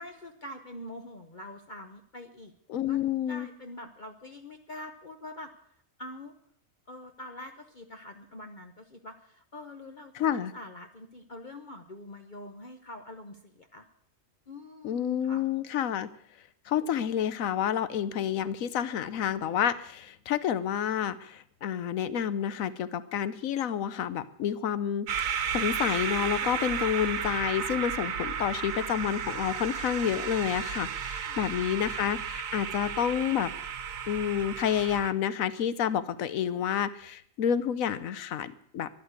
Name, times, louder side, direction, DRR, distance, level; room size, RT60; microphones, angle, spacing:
voice 1, 0.0-2.5 2.9-3.0 3.3-5.7 6.0-6.3 6.9-13.9 14.5-15.4 31.3-31.4, left 1 dB, 40° left, 5 dB, 1.0 m, -45 dB
voice 2, 2.7-3.5 10.1-10.5 14.8-16.1 16.7-33.5 34.1-38.9, left 9 dB, 85° left, 15 dB, 1.2 m, -29 dB
sound 1, 25.1-35.1, right 7 dB, 85° right, 1.4 m, -33 dB
13.5 x 11.0 x 8.1 m, 0.64 s
omnidirectional pair, 1.4 m